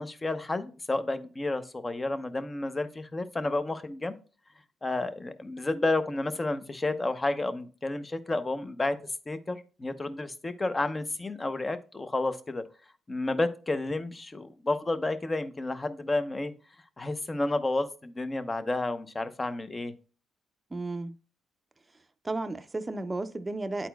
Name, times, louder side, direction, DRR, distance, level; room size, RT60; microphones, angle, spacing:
voice 1, 0.0-4.1 4.8-9.0 9.3-12.6 13.1-16.5 17.0-19.9, left 2 dB, 25° left, 0.7 m, -31 dB
voice 2, 20.7-21.1 22.2-23.9, right 2 dB, 20° right, 0.5 m, -33 dB
10.0 x 4.2 x 2.3 m
cardioid pair, 90°, 0 cm